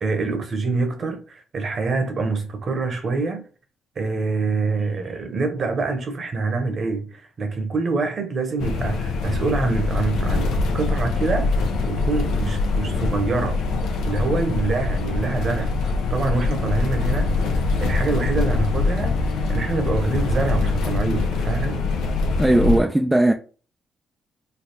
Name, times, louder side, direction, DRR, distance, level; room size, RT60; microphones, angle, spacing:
voice 1, 0.0-3.4 4.0-13.6 14.0-15.7 16.1-21.8, right 3 dB, 45° right, 0.9 m, -26 dB
sound 1, 8.6-22.8, left 3 dB, 85° left, 0.7 m, -23 dB
voice 2, 22.4-23.3, right 1 dB, 10° right, 0.3 m, -17 dB
3.3 x 2.3 x 4.1 m
cardioid pair, 90°, 0 cm